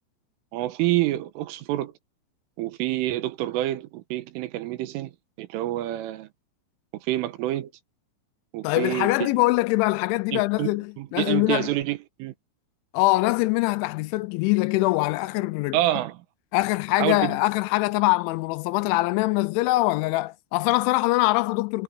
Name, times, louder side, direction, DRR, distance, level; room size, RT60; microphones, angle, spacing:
voice 1, 0.5-1.9 2.6-5.1 5.4-6.3 6.9-7.7 8.5-9.3 10.3-12.3 15.7-16.3 16.9-17.4, right 15 dB, 85° right, 3.8 m, -27 dB
voice 2, 8.6-11.7 12.9-15.8 16.5-21.8, left 20 dB, 85° left, 2.9 m, -23 dB
omnidirectional pair, 5.6 m